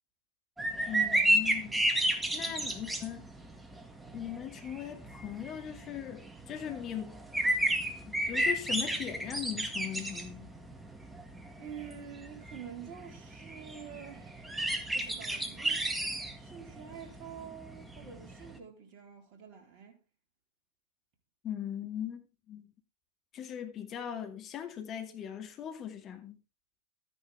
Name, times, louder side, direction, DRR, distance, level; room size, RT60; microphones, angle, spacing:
sound 1, 0.6-18.6, right 1 dB, 10° right, 1.9 m, -33 dB
voice 1, 0.9-1.8 2.3-3.2 4.1-7.2 8.0-10.5 21.4-22.7 23.3-26.4, left 10 dB, 35° left, 2.3 m, -39 dB
voice 2, 11.6-14.5 14.9-15.9 16.4-20.0, right 8 dB, 45° right, 3.8 m, -47 dB
13.0 x 9.9 x 3.6 m
figure-of-eight pair, 95°, 0 cm